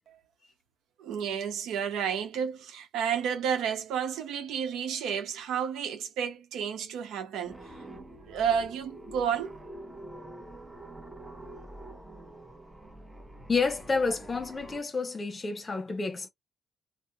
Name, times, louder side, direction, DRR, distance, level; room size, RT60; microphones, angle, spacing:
voice 1, 1.0-7.6 8.3-9.5, right 8 dB, 85° right, 0.9 m, -31 dB
sound 1, 7.4-14.8, right 1 dB, 10° right, 1.0 m, -46 dB
voice 2, 13.5-16.3, left 4 dB, 30° left, 0.9 m, -29 dB
2.6 x 2.2 x 2.4 m
cardioid pair, 90°, 0 cm